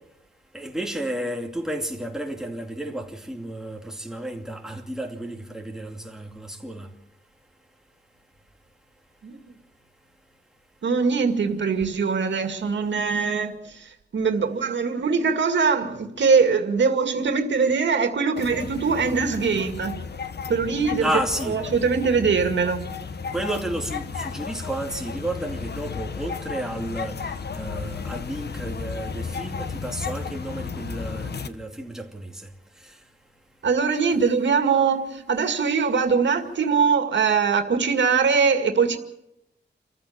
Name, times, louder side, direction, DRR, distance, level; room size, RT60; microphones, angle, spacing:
voice 1, 0.5-6.9 21.0-21.6 23.3-27.2 27.5-32.3, right 1 dB, 5° right, 2.6 m, -32 dB
voice 2, 10.8-20.0 20.5-21.1 21.5-22.8 33.6-39.0, right 5 dB, 85° right, 2.2 m, -22 dB
sound 1, 18.4-31.5, left 5 dB, 65° left, 1.2 m, -34 dB
28.0 x 14.5 x 7.3 m
wide cardioid pair, 150°, 18 cm